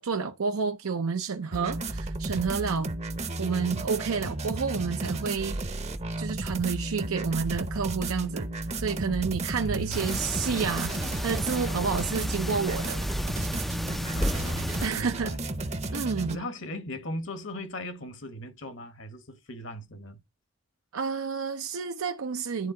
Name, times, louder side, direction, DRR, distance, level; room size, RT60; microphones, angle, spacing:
voice 1, 0.0-3.0 3.4-5.6 6.2-13.0 14.8-15.4 15.9-16.4 20.9-22.7, right 5 dB, 85° right, 0.6 m, -30 dB
sound 1, 1.5-16.4, right 2 dB, 30° right, 0.7 m, -33 dB
voice 2, 9.6-10.1 14.1-15.4 16.3-20.2, equal, 60° left, 1.1 m, -38 dB
sound 2, 9.9-14.9, equal, ahead, 0.3 m, -33 dB
11.0 x 3.7 x 3.7 m
head